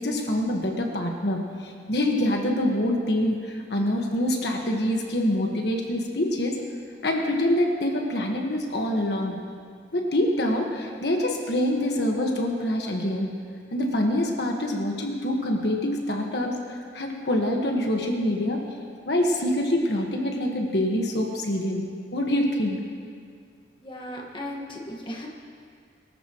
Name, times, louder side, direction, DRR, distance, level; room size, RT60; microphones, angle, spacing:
voice 1, 0.0-6.6 7.0-9.4 9.9-13.3 13.7-18.6 19.0-21.8 22.1-22.8, left 1 dB, 65° left, 1 dB, 1.5 m, -25 dB
voice 2, 23.8-25.3, left 1 dB, 30° left, -1 dB, 1.6 m, -36 dB
23.0 x 13.5 x 3.1 m, 2.2 s
head